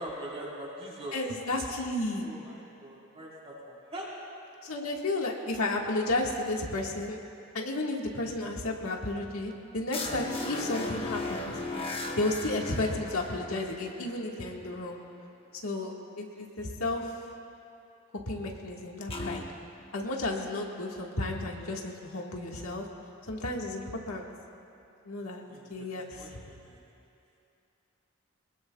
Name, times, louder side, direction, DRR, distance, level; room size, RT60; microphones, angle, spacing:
voice 1, 0.0-1.2 1.6-1.7 2.2-4.2 25.2-26.8, right 1 dB, 30° right, -6 dB, 4.2 m, -42 dB
voice 2, 1.1-2.3 4.6-7.2 7.5-11.6 12.2-15.0 15.6-17.2 18.3-19.4 19.9-22.9 23.3-24.3 25.0-25.4 25.7-26.4, left 2 dB, 90° left, 0 dB, 1.7 m, -32 dB
sound 1, 9.9-14.3 19.1-19.4, left 2 dB, 25° left, 1.0 m, -36 dB
23.0 x 20.5 x 2.4 m, 2.7 s
head